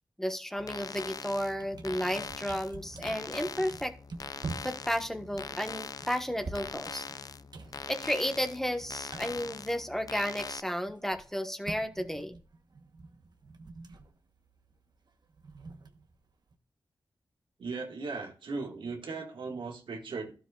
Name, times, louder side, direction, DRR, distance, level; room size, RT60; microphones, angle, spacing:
voice 1, 0.2-3.9 4.6-7.1 7.9-12.4, equal, 5° left, 1.3 m, -33 dB
sound 1, 0.6-10.6, left 5 dB, 50° left, 0.4 m, -42 dB
sound 2, 1.5-10.3 10.6-16.6, right 3 dB, 60° right, 1.1 m, -47 dB
voice 2, 17.6-20.3, right 4 dB, 85° right, 1.9 m, -37 dB
12.0 x 7.6 x 2.4 m
cardioid pair, 50°, 8 cm